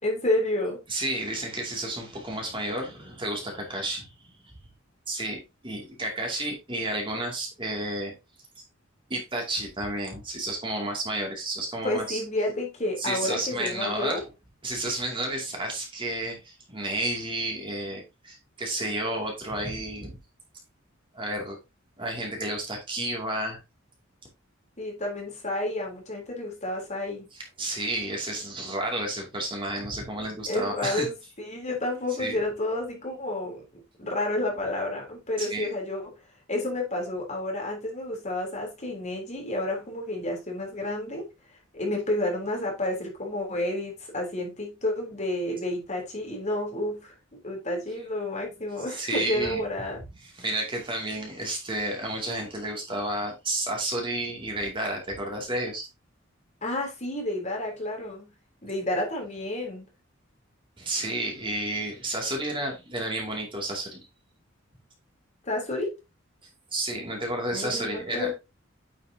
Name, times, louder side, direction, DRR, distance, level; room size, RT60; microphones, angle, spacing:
voice 1, 0.0-0.8 11.8-14.2 24.8-27.3 30.4-31.1 31.4-36.1 36.5-41.3 41.7-50.0 56.6-58.3 58.6-59.9 65.4-66.0 67.5-68.3, left 1 dB, 35° left, 3.4 m, -30 dB
voice 2, 0.9-4.5 5.1-8.1 8.6-8.7 9.1-12.2 13.0-14.2 14.6-20.2 21.1-21.6 22.0-23.6 27.3-31.1 32.2-32.4 35.4-35.7 48.9-49.6 50.2-55.9 60.8-64.1 66.7-68.3, right 1 dB, 25° right, 2.5 m, -31 dB
9.4 x 6.5 x 2.8 m
head